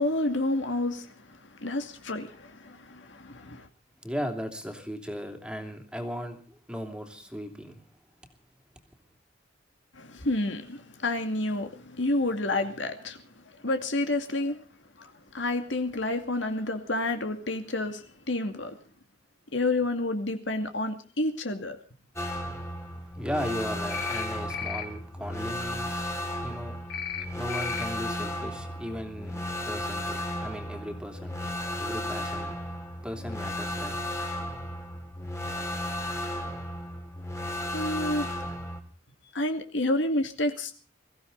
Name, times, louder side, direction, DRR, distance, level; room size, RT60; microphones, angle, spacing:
voice 1, 0.0-3.7 9.9-13.2 13.6-14.6 15.0-18.7 19.5-21.8 37.7-38.3 39.3-40.7, left 2 dB, 70° left, 2.3 m, -29 dB
voice 2, 4.0-7.8 23.2-26.8 27.4-31.5 31.8-32.5 33.0-33.9, equal, 5° right, 2.9 m, -37 dB
sound 1, 22.2-38.8, left 1 dB, 15° left, 2.7 m, -34 dB
sound 2, 23.9-24.2 24.5-24.8 26.9-27.2 27.5-27.8, left 8 dB, 55° left, 3.2 m, -34 dB
23.0 x 15.5 x 4.0 m
head